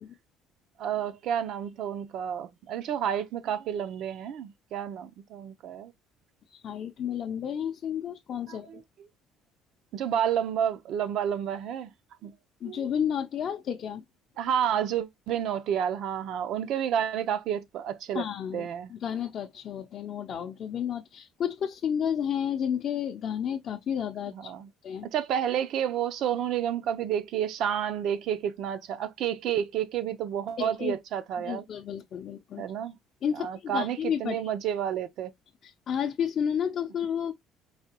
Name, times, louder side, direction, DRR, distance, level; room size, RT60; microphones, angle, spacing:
voice 1, 0.8-5.9 8.5-8.8 9.9-11.9 12.2-12.3 12.6-12.9 14.4-18.2 18.5-18.9 24.3-24.7 25.0-31.6 32.6-33.0 33.4-35.3, right 9 dB, 55° right, 0.7 m, -30 dB
voice 2, 6.5-8.8 12.6-14.0 18.1-24.5 24.8-25.1 30.6-31.0 31.4-32.6 33.2-34.4 35.6-37.3, left 8 dB, 40° left, 0.6 m, -31 dB
4.8 x 2.8 x 2.8 m
cardioid pair, 155°, 0 cm